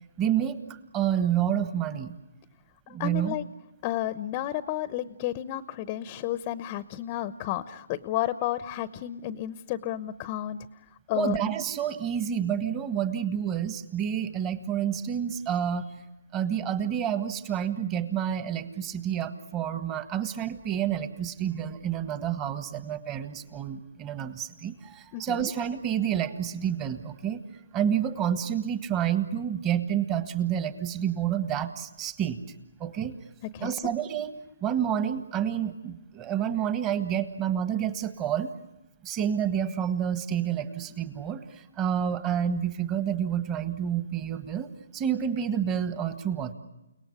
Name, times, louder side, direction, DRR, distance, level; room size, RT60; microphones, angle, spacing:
voice 1, 0.2-0.6 0.9-2.2 2.9-3.3 11.1-15.9 16.3-27.4 27.7-32.4 32.8-33.2 33.6-34.3 34.6-38.5 39.0-46.5, right 9 dB, 20° right, 10 dB, 1.6 m, -29 dB
voice 2, 2.9-3.4 3.8-10.6 11.1-11.4 25.1-25.5 33.5-33.7, left 13 dB, 25° left, 14 dB, 0.9 m, -32 dB
30.0 x 18.5 x 9.9 m, 0.95 s
hypercardioid pair, 150°, 0 cm